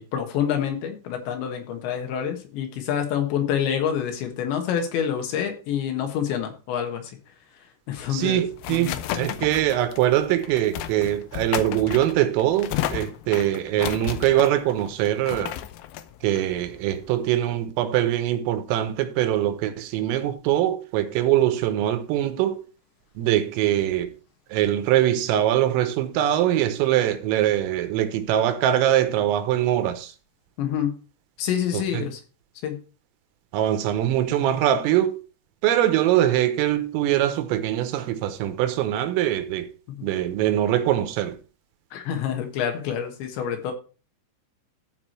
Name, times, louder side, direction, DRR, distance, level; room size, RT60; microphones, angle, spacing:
voice 1, 0.0-7.1 7.9-8.4 8.7-9.0 30.6-30.9 31.4-32.2 32.6-32.8 40.0-40.1 41.9-43.7, left 9 dB, 70° left, 3.5 m, -27 dB
sound 1, 8.0-17.3, left 12 dB, 85° left, 2.4 m, -33 dB
voice 2, 8.1-15.5 16.2-22.6 23.2-24.1 24.5-30.1 31.7-32.1 33.5-35.2 35.6-39.7 40.0-41.4, right 12 dB, 85° right, 3.7 m, -23 dB
14.5 x 4.9 x 4.5 m
omnidirectional pair, 5.9 m